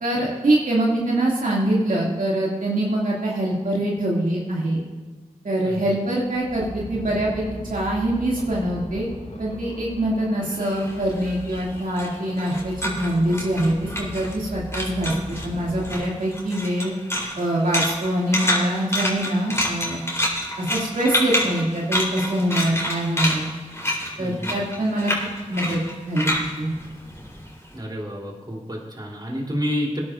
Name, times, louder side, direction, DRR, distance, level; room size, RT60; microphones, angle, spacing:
voice 1, 0.0-4.8 5.4-9.1 9.4-16.9 17.4-20.0 20.6-23.4 24.2-25.1 25.5-25.8 26.1-26.7, right 1 dB, 75° right, -4 dB, 2.3 m, -24 dB
voice 2, 5.6-6.0 24.2-24.9 27.7-30.0, equal, 30° right, -2 dB, 3.3 m, -30 dB
sound 1, 6.2-16.0, equal, 60° left, 4.3 m, -38 dB
sound 2, 10.5-14.5 14.7-15.5 15.8-27.7, left 1 dB, 20° left, 3.6 m, -27 dB
19.5 x 10.5 x 2.5 m, 1.3 s
wide cardioid pair, 45°, 14 cm